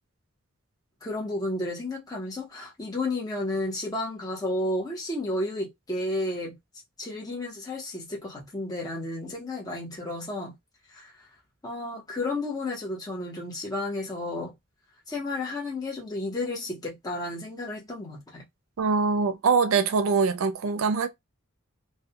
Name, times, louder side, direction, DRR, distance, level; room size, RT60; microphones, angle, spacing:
voice 1, 1.0-6.6 7.0-10.5 10.9-11.1 11.6-14.5 15.1-18.4, left 2 dB, 20° left, 0.7 m, -32 dB
voice 2, 18.8-21.1, right 5 dB, 75° right, 0.4 m, -23 dB
2.2 x 2.2 x 2.8 m
head